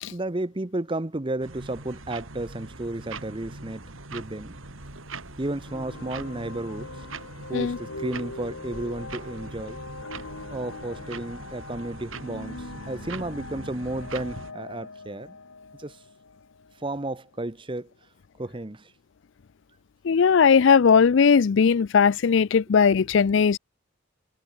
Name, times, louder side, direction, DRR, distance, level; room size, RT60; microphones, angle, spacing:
voice 1, 0.1-3.8 4.1-4.6 5.4-7.1 7.5-9.8 10.5-15.4 15.8-16.0 16.8-17.9 18.4-18.9, right 2 dB, 25° right, 0.8 m, -33 dB
sound 1, 1.4-14.5, right 3 dB, 75° right, 3.1 m, -41 dB
sound 2, 5.6-16.9, left 3 dB, 85° left, 2.4 m, -42 dB
voice 2, 20.0-23.6, left 6 dB, 60° left, 0.4 m, -18 dB
head